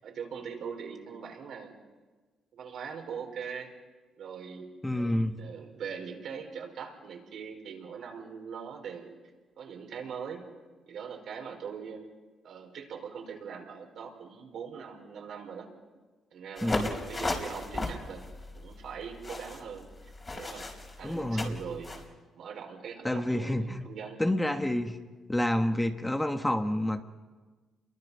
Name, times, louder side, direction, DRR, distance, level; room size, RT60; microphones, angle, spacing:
voice 1, 0.0-1.7 2.5-3.7 4.2-4.7 5.4-9.2 9.6-10.4 10.9-12.1 12.4-15.7 16.3-18.2 18.5-20.7 21.0-21.9 22.3-24.2, right 6 dB, 70° right, 2 dB, 4.9 m, -41 dB
voice 2, 4.8-5.4 16.6-16.9 21.0-21.6 23.0-23.8 24.2-25.0 25.3-27.0, left 1 dB, 10° left, 6 dB, 1.3 m, -28 dB
sound 1, 16.6-22.0, left 2 dB, 30° left, 4.6 m, -36 dB
29.0 x 23.0 x 5.6 m, 1.3 s
cardioid pair, 90°, 0 cm